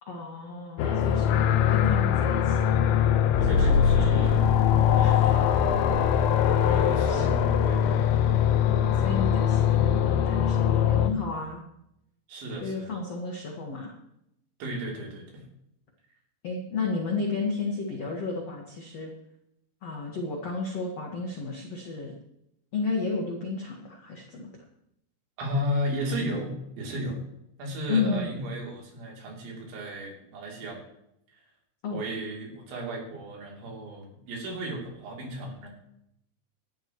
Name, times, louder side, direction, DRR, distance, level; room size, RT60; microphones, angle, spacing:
voice 1, 0.1-1.4 1.7-2.7 3.4-4.4 5.0-5.3 6.4-7.4 9.0-11.6 12.6-13.9 16.4-19.1 19.8-22.1 22.7-24.5 27.9-28.3 31.8-32.0, left 4 dB, 70° left, 0 dB, 1.5 m, -32 dB
sound 1, 0.8-11.1, left 8 dB, 90° left, 3.7 m, -22 dB
voice 2, 0.8-1.3 3.4-4.6 5.0-5.5 6.6-8.0 12.3-13.0 14.6-15.4 25.4-27.2 27.6-30.8 31.9-35.7, equal, 65° right, -1 dB, 5.4 m, -34 dB
18.0 x 12.5 x 3.1 m, 0.79 s
omnidirectional pair, 5.8 m